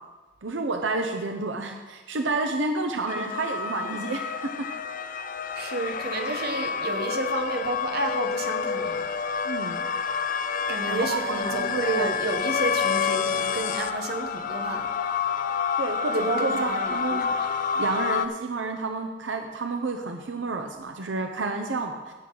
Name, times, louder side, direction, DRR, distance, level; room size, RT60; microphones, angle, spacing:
voice 1, 0.4-4.2 4.6-4.7 9.4-9.9 10.9-12.2 15.8-17.3 17.7-22.1, right 3 dB, 85° right, 4 dB, 0.8 m, -30 dB
sound 1, 3.1-18.3, left 6 dB, 45° left, 0.4 m, -28 dB
voice 2, 5.5-9.1 10.7-14.9 16.1-17.3, right 3 dB, 60° right, 4 dB, 1.1 m, -31 dB
17.0 x 6.1 x 3.9 m, 1.3 s
head